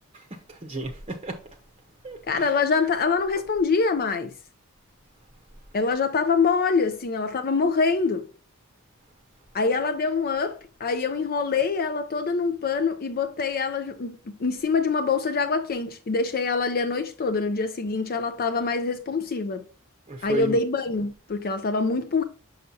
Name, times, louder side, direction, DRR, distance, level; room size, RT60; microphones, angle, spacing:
voice 1, 0.1-1.4 2.0-2.4 20.1-20.6, right 2 dB, 30° right, 0.8 m, -33 dB
voice 2, 2.3-4.3 5.7-8.3 9.5-19.6 20.2-22.2, left 4 dB, 45° left, 0.5 m, -25 dB
6.3 x 5.9 x 2.7 m
head